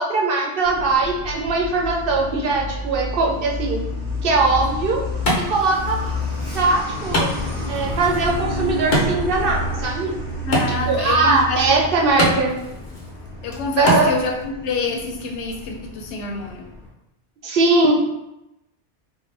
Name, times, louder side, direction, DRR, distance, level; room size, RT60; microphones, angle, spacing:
voice 1, 0.0-3.8 4.2-5.0 5.5-6.1 6.5-10.1 10.7-12.5 13.8-14.1 17.4-17.9, right 3 dB, 60° right, 0 dB, 0.7 m, -20 dB
Truck, 0.6-16.9, left 1 dB, 5° right, 1.1 m, -30 dB
Wood, 4.4-14.4, equal, 60° left, 1.1 m, -28 dB
voice 2, 10.4-11.8 13.4-16.7, left 3 dB, 90° left, 1 dB, 0.9 m, -27 dB
3.6 x 2.1 x 3.2 m, 0.90 s
omnidirectional pair, 1.2 m